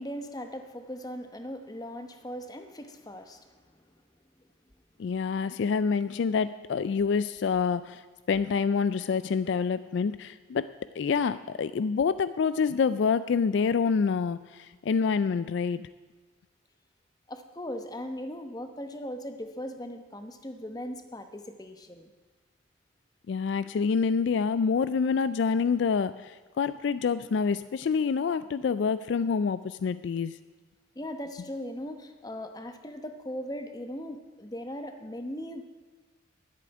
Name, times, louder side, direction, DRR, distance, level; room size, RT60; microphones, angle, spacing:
voice 1, 0.0-3.9 17.3-22.1 30.9-35.6, equal, 20° left, 7 dB, 0.9 m, -39 dB
voice 2, 5.0-8.0 8.3-15.9 23.3-30.4, left 5 dB, 60° left, 14 dB, 0.3 m, -27 dB
10.5 x 8.4 x 9.6 m, 1.3 s
head